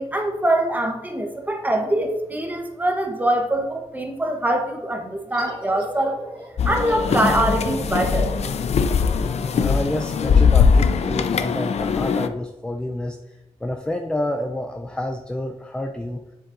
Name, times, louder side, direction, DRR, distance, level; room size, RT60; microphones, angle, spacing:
voice 1, 0.0-6.2 6.6-8.3, right 1 dB, 15° right, 3 dB, 1.1 m, -23 dB
sound 1, 5.3-10.6, right 1 dB, 45° right, 2.0 m, -38 dB
sound 2, 6.6-12.3, left 5 dB, 65° left, 0.4 m, -20 dB
sound 3, 7.1-8.7 10.2-11.5, left 3 dB, 40° left, 0.7 m, -32 dB
voice 2, 9.6-13.4 13.6-16.2, left 1 dB, 10° left, 3 dB, 0.4 m, -28 dB
7.4 x 7.2 x 2.6 m, 1.0 s
wide cardioid pair, 110°, 12 cm